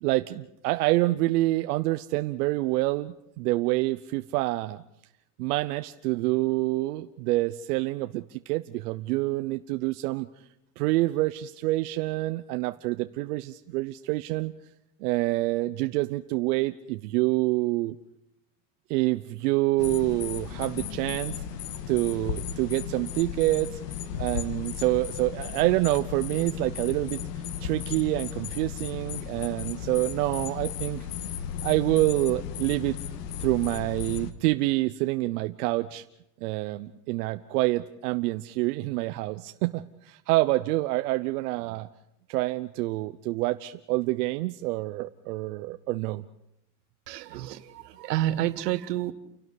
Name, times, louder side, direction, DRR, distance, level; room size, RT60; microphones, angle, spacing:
voice 1, 0.0-4.8 5.4-10.3 10.8-14.5 15.0-18.0 18.9-21.4 21.9-23.8 24.2-27.2 27.6-31.1 31.6-33.0 33.4-36.0 36.4-41.9 42.3-46.2, right 19 dB, 70° right, 10 dB, 1.0 m, -27 dB
sound 1, 19.8-34.3, left 8 dB, 80° left, 2.2 m, -35 dB
voice 2, 47.1-49.1, right 13 dB, 85° right, 12 dB, 1.7 m, -29 dB
29.5 x 12.0 x 9.8 m, 0.82 s
supercardioid pair, 130°, 47 cm